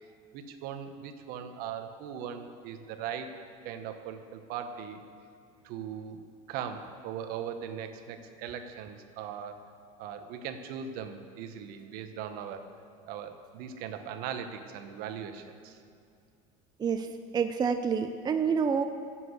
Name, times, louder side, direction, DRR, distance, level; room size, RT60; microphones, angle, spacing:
voice 1, 0.3-3.4 3.6-5.0 5.6-6.2 6.5-9.6 10.0-12.7 13.1-15.8, right 8 dB, 60° right, 8 dB, 1.3 m, -39 dB
voice 2, 16.8-18.8, right 6 dB, 25° right, 7 dB, 0.6 m, -28 dB
14.0 x 7.8 x 8.2 m, 2.4 s
supercardioid pair, 110°, 17 cm